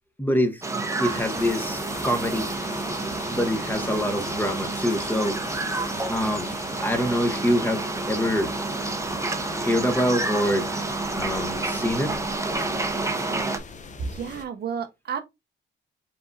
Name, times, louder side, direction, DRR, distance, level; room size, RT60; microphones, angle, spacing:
voice 1, 0.2-2.5 3.3-5.7 6.1-6.5 6.8-8.5 9.6-10.7 11.1-12.2, equal, 10° left, 1.0 m, -25 dB
sound 1, 0.6-13.6, right 2 dB, 15° right, 0.8 m, -29 dB
sound 2, 1.0-14.4, left 5 dB, 40° left, 0.7 m, -41 dB
voice 2, 14.0-15.2, right 6 dB, 55° right, 0.8 m, -31 dB
4.9 x 3.8 x 2.6 m
cardioid pair, 90°, 20 cm